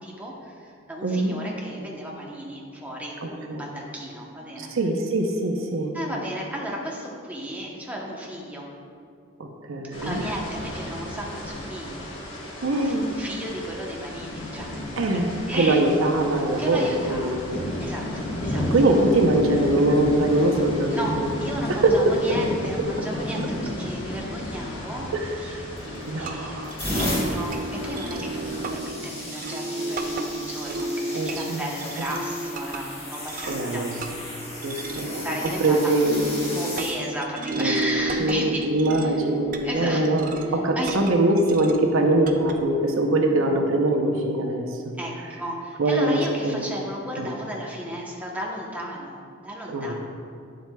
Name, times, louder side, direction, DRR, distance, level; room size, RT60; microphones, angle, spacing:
voice 1, 0.0-4.7 5.9-8.7 10.0-12.4 12.7-15.2 15.5-15.8 16.6-17.4 17.8-18.7 20.9-30.9 31.2-33.9 34.9-35.9 36.5-38.6 39.0-39.2 39.6-40.0 40.5-41.0 45.0-49.9, right 1 dB, 5° right, -3 dB, 0.9 m, -34 dB
voice 2, 1.0-1.4 3.2-3.6 4.6-5.9 9.4-10.2 12.6-13.1 15.0-17.6 18.6-21.3 21.7-22.4 23.2-23.3 25.1-25.6 26.1-26.7 31.1-31.7 33.5-33.9 34.6-35.2 35.6-36.5 37.6-37.7 38.2-44.8 45.8-46.8 47.2-47.3 49.7-49.9, right 2 dB, 75° right, 3 dB, 0.7 m, -23 dB
sound 1, 9.9-28.7, left 1 dB, 60° left, 1.2 m, -33 dB
sound 2, 25.8-26.1 26.6-36.9 37.8-38.1 39.6-39.8, left 1 dB, 30° left, 1.5 m, -35 dB
sound 3, 25.9-42.5, right 1 dB, 40° right, 0.4 m, -33 dB
9.0 x 7.6 x 2.3 m, 2.3 s
head